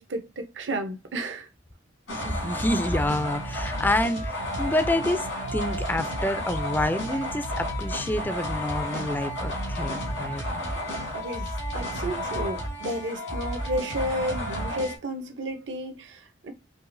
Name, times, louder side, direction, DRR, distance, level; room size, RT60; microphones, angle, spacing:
voice 1, 0.0-1.5 11.1-16.5, right 1 dB, 70° right, 0.7 m, -32 dB
sound 1, 2.1-15.0, equal, 85° left, 1.8 m, -31 dB
voice 2, 2.1-10.4, left 1 dB, 10° left, 0.3 m, -28 dB
4.7 x 2.8 x 2.6 m
head